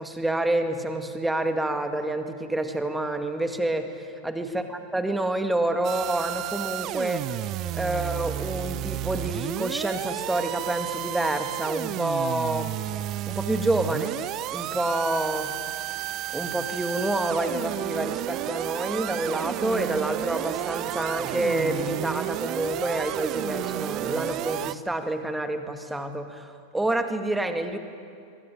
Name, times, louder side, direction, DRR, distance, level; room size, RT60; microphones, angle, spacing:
voice 1, 0.0-7.3 7.7-12.8 13.3-14.2 14.5-15.6 16.3-27.8, right 1 dB, 5° right, 6 dB, 2.2 m, -28 dB
sound 1, 5.8-24.7, right 14 dB, 35° right, 0.6 m, -32 dB
24.5 x 23.0 x 9.2 m, 2.4 s
figure-of-eight pair, 90°, 0 cm